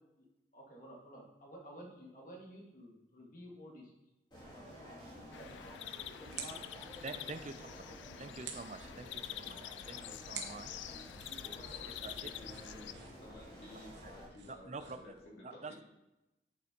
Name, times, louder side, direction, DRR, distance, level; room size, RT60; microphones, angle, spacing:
voice 1, 0.5-3.9 5.2-5.8 6.0-6.6 7.1-7.4 8.0-8.6 8.9-9.0 10.0-10.1, equal, 45° left, -1 dB, 1.9 m, -53 dB
sound 1, 4.3-14.3, equal, 25° left, 2.7 m, -52 dB
sound 2, 5.3-12.9, left 12 dB, 80° left, 0.3 m, -47 dB
sound 3, 6.2-15.2, right 6 dB, 65° right, 1.1 m, -52 dB
voice 2, 7.0-7.7 8.2-9.6 9.9-10.7 11.7-12.3 14.0-14.1 14.5-15.1 15.4-15.8, right 3 dB, 40° right, 9 dB, 0.5 m, -47 dB
voice 3, 10.9-12.9 13.2-15.8, left 1 dB, 65° left, -4 dB, 2.7 m, -54 dB
8.4 x 7.6 x 3.0 m, 0.97 s
head